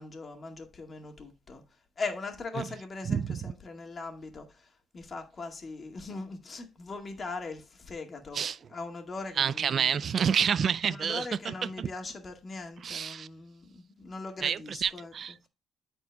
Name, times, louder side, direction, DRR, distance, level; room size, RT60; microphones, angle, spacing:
voice 1, 0.0-1.6 2.0-4.7 4.9-8.4 8.7-10.0 10.9-15.1, left 3 dB, 40° left, 2.0 m, -40 dB
voice 2, 3.1-3.5 8.3-8.6 9.4-11.9 12.8-13.3 14.4-15.5, right 7 dB, 55° right, 0.3 m, -29 dB
13.5 x 4.5 x 2.3 m
cardioid pair, 90°, 0 cm